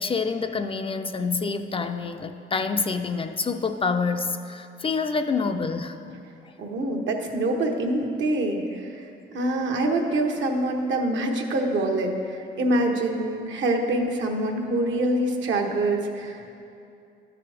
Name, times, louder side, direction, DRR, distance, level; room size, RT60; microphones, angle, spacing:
voice 1, 0.0-6.0, left 4 dB, 30° left, 7 dB, 0.4 m, -27 dB
voice 2, 6.6-9.0 9.3-12.1 12.6-16.5, right 1 dB, 70° right, 2 dB, 1.1 m, -25 dB
12.5 x 4.9 x 4.9 m, 2.6 s
cardioid pair, 90°, 20 cm